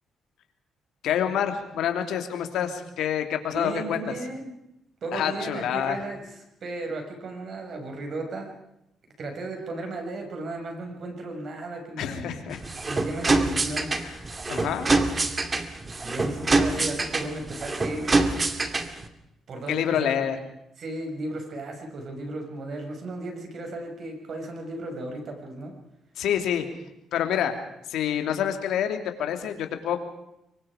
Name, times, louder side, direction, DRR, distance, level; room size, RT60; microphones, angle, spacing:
voice 1, 1.0-4.0 5.1-6.0 12.0-12.6 14.0-14.2 14.5-14.9 19.7-20.4 26.2-26.7 27.1-27.5 27.9-30.0, left 9 dB, 80° left, 6 dB, 2.9 m, -27 dB
voice 2, 3.5-4.5 5.0-8.5 9.2-12.5 12.8-14.0 16.0-18.3 19.5-20.3 20.8-25.7, right 2 dB, 55° right, 3 dB, 6.5 m, -35 dB
sound 1, 12.5-19.1, right 3 dB, 30° right, 2.2 m, -25 dB
25.0 x 23.5 x 5.1 m, 0.84 s
cardioid pair, 90°, 0 cm